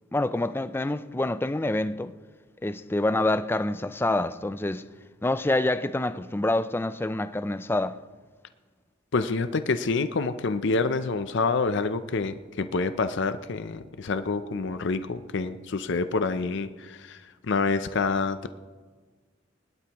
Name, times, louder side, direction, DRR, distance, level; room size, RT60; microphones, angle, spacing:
voice 1, 0.1-2.1 2.6-4.9 5.2-8.0, left 2 dB, 10° left, 0.4 m, -27 dB
voice 2, 9.1-18.5, left 4 dB, 60° left, 0.6 m, -27 dB
22.5 x 11.5 x 3.0 m
head